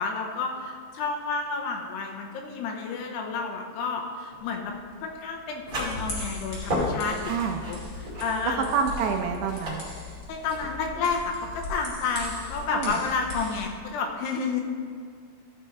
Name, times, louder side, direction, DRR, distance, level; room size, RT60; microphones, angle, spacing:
voice 1, 0.0-4.7 5.0-8.7 10.3-14.6, left 4 dB, 80° left, 2 dB, 2.7 m, -30 dB
sound 1, 4.3-11.9, equal, 30° right, 1.9 m, -34 dB
sound 2, 5.7-13.7, left 2 dB, 50° left, 0.9 m, -39 dB
voice 2, 7.3-7.6 8.7-9.9 12.7-13.0, right 6 dB, 80° right, 4 dB, 2.6 m, -27 dB
14.0 x 5.0 x 4.4 m, 2.1 s
omnidirectional pair, 5.1 m